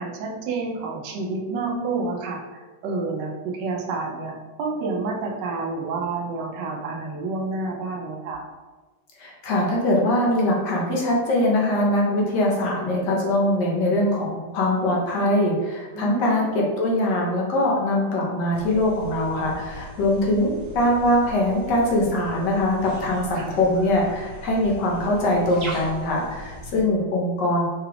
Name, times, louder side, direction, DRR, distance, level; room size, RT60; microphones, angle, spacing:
voice 1, 0.0-8.4 15.9-16.5 23.3-23.6, right 3 dB, 90° right, 1 dB, 1.3 m, -29 dB
voice 2, 9.2-27.8, left 1 dB, 75° left, -2 dB, 1.5 m, -22 dB
sound 1, 18.5-26.8, equal, 65° right, 1.5 m, -39 dB
4.8 x 2.4 x 3.3 m, 1.3 s
omnidirectional pair, 1.9 m